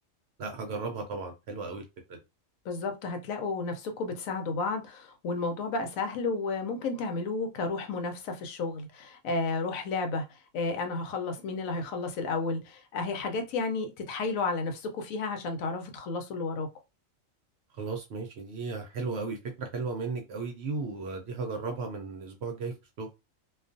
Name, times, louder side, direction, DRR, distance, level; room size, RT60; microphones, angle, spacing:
voice 1, 0.4-1.8 2.1-2.2 17.8-23.1, right 4 dB, 65° right, 0.7 m, -35 dB
voice 2, 2.6-16.7, left 3 dB, 80° left, 1.0 m, -32 dB
2.4 x 2.3 x 2.5 m
omnidirectional pair, 1.4 m